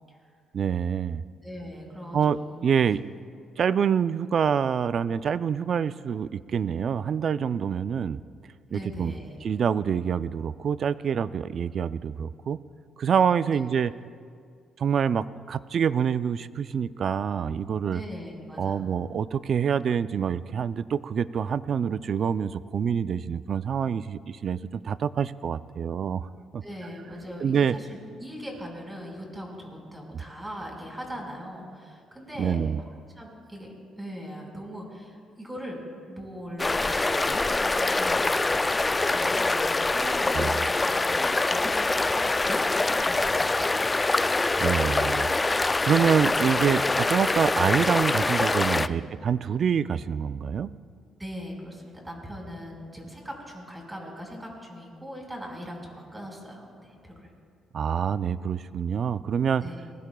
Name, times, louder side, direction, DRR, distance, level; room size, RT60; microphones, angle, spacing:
voice 1, 0.5-1.2 2.1-3.0 3.6-8.2 8.7-9.1 9.4-12.6 13.0-13.9 14.8-18.0 18.6-26.3 26.5-26.6 27.4-27.7 32.4-32.8 40.3-40.5 44.6-45.3 45.8-50.7 57.7-59.6, right 7 dB, 55° right, 15 dB, 0.4 m, -26 dB
voice 2, 1.4-2.6 8.7-9.4 13.5-13.7 17.9-18.8 26.6-35.8 36.1-43.4 48.7-49.0 51.2-57.3 59.6-59.8, equal, 10° right, 0 dB, 4.8 m, -40 dB
sound 1, 36.6-48.9, left 3 dB, 20° left, 0.3 m, -24 dB
24.0 x 20.0 x 2.3 m, 2.2 s
cardioid pair, 90°, 0 cm